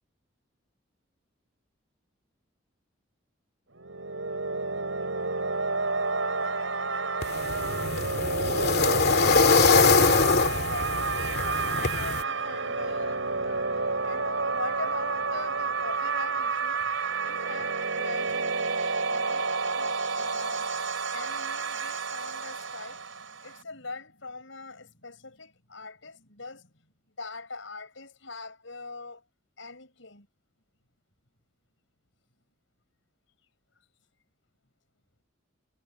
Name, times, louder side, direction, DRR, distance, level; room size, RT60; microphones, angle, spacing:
sound 1, 3.7-23.6, right 4 dB, 75° right, 6.0 m, -30 dB
sound 2, 7.2-12.2, left 4 dB, 55° left, 2.3 m, -23 dB
voice 1, 9.4-26.7 27.2-29.2 29.6-30.3, left 3 dB, 70° left, 6.5 m, -42 dB
head